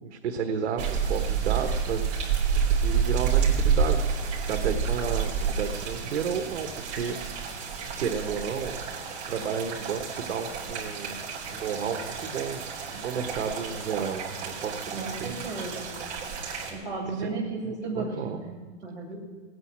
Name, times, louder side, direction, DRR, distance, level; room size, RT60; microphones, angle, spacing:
voice 1, 0.0-2.0 2.5-4.0 4.5-7.2 8.0-8.7 9.3-11.2 11.5-12.6 12.9-15.4 17.2-17.4 17.9-18.4, right 6 dB, 75° right, 3 dB, 1.4 m, -32 dB
sound 1, 0.8-16.7, right 6 dB, 20° right, 3.2 m, -29 dB
voice 2, 15.0-15.9 16.7-19.2, right 3 dB, 10° left, -6 dB, 6.0 m, -34 dB
18.5 x 9.6 x 7.5 m, 1.5 s
supercardioid pair, 170°, 35 cm